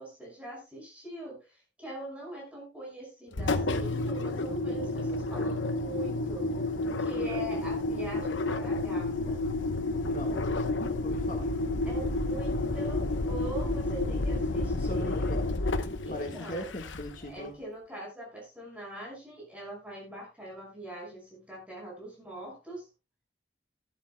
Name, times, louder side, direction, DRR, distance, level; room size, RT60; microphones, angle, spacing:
voice 1, 0.0-6.5 7.0-9.5 11.9-15.3 16.0-16.7 17.2-22.9, right 1 dB, 5° right, -2 dB, 5.5 m, -42 dB
Engine, 3.3-17.3, left 2 dB, 90° left, 0.9 m, -30 dB
voice 2, 10.8-12.4 14.8-15.4 16.1-17.5, left 1 dB, 45° left, 3 dB, 1.6 m, -40 dB
15.0 x 11.5 x 2.2 m, 0.26 s
head